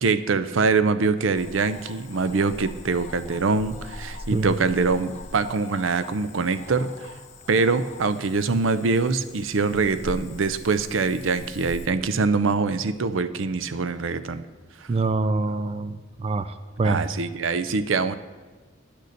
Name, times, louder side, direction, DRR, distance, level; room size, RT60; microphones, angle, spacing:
voice 1, 0.0-7.1 7.5-14.4 16.8-18.1, right 4 dB, 80° right, 13 dB, 0.6 m, -24 dB
Cricket / Frog, 1.4-11.9, left 2 dB, 35° left, 1.0 m, -42 dB
voice 2, 14.9-17.0, right 3 dB, 30° right, 12 dB, 0.3 m, -25 dB
10.0 x 6.7 x 6.5 m, 1.4 s
head